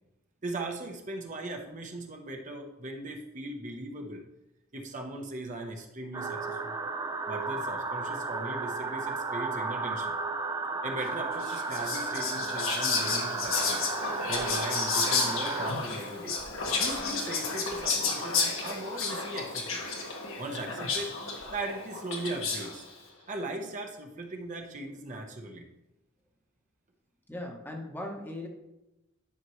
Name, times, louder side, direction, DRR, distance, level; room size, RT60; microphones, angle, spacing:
voice 1, 0.4-4.2 4.7-6.7 7.3-10.1 10.8-13.8 14.3-16.4 16.8-19.8 20.4-21.1 21.5-22.8 23.3-25.7, right 2 dB, 35° right, 2 dB, 0.8 m, -38 dB
sound 1, 6.1-15.7, right 3 dB, 20° right, 0.4 m, -34 dB
Whispering, 11.4-22.8, left 4 dB, 75° left, 1.6 m, -32 dB
voice 2, 27.3-28.5, left 1 dB, 10° left, 1 dB, 0.9 m, -38 dB
11.0 x 5.9 x 3.1 m, 0.95 s
head